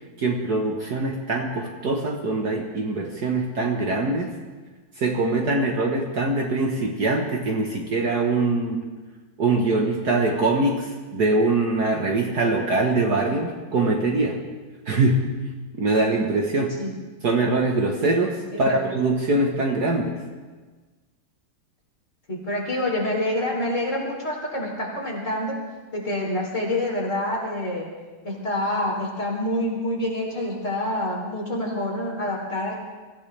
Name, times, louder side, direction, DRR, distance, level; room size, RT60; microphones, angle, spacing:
voice 1, 0.2-4.3 5.0-8.8 9.4-14.4 14.9-15.2 15.8-16.7 17.2-20.2, right 2 dB, 50° right, 1 dB, 1.7 m, -23 dB
voice 2, 18.5-18.8 22.3-25.6 25.9-27.9 28.2-32.8, left 1 dB, 35° left, -3 dB, 3.8 m, -27 dB
24.0 x 15.5 x 3.4 m, 1.3 s
omnidirectional pair, 2.3 m